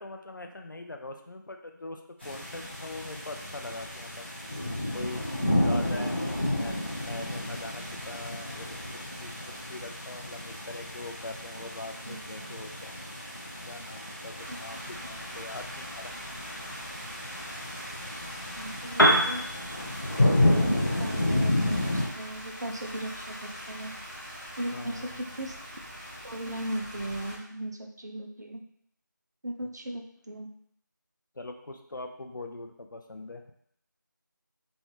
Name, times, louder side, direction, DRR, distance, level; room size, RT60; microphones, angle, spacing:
voice 1, 0.0-4.3 4.9-5.2 5.6-13.0 13.7-16.1 24.7-25.2 29.6-29.7 31.4-33.5, left 2 dB, 70° left, 4 dB, 0.5 m, -42 dB
sound 1, 2.2-22.1, left 1 dB, 35° left, 1.1 m, -31 dB
voice 2, 12.1-12.6 14.5-14.8 18.6-19.4 20.5-20.7 21.0-23.9 24.6-25.6 26.2-28.6 29.4-30.5, right 1 dB, 55° right, 3 dB, 0.5 m, -37 dB
sound 2, 14.3-27.4, equal, 10° left, 0.9 m, -43 dB
Piano, 18.9-26.7, equal, 90° left, 0.9 m, -32 dB
3.1 x 2.2 x 3.0 m, 0.68 s
figure-of-eight pair, 175°, 11 cm